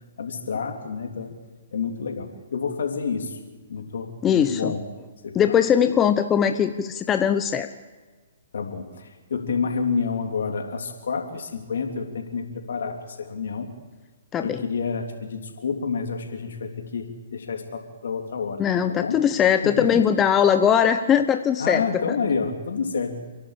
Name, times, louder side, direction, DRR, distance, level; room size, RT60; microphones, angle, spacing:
voice 1, 0.2-1.3 1.7-3.4 3.7-4.8 5.2-5.4 8.5-13.7 14.4-18.6 19.0-19.2 19.6-20.0 21.6-23.3, left 5 dB, 70° left, 4 dB, 3.4 m, -29 dB
voice 2, 4.2-4.8 5.3-7.7 14.3-14.6 18.6-22.2, left 8 dB, 20° left, 8 dB, 0.9 m, -20 dB
29.5 x 11.5 x 8.5 m, 1.3 s
hypercardioid pair, 135°, 0 cm